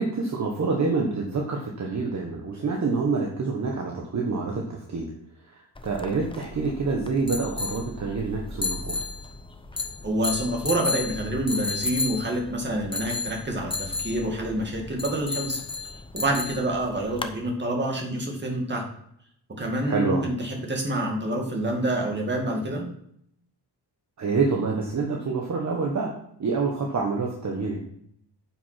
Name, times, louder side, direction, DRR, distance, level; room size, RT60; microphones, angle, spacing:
voice 1, 0.0-5.1 5.5-9.0 19.9-20.2 24.2-26.1 26.4-27.8, right 4 dB, 40° right, 0 dB, 1.3 m, -27 dB
sound 1, 5.8-17.3, left 3 dB, 10° left, 0.6 m, -33 dB
voice 2, 10.0-15.6 16.1-18.9 19.6-22.9, right 1 dB, 25° right, 1 dB, 2.2 m, -27 dB
9.1 x 6.0 x 5.9 m, 0.71 s
wide cardioid pair, 155°, 42 cm